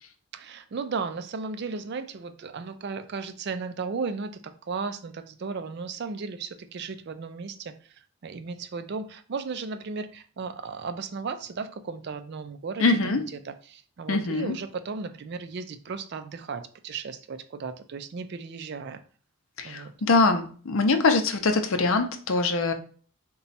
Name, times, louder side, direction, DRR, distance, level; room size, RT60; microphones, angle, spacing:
voice 1, 0.3-13.0 13.4-19.0 19.6-19.9, right 4 dB, 50° right, 0.4 m, -35 dB
voice 2, 12.8-13.2 14.1-14.5 19.6-22.7, left 3 dB, 65° left, 0.6 m, -23 dB
4.1 x 2.3 x 4.0 m
head